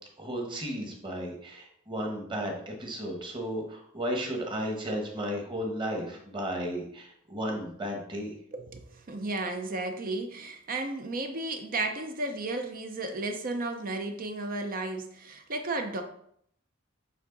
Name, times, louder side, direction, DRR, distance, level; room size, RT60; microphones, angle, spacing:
voice 1, 0.2-8.3, equal, 25° right, 1 dB, 1.3 m, -34 dB
voice 2, 8.5-16.0, right 2 dB, 40° right, 5 dB, 0.6 m, -33 dB
8.3 x 3.6 x 3.9 m, 0.69 s
head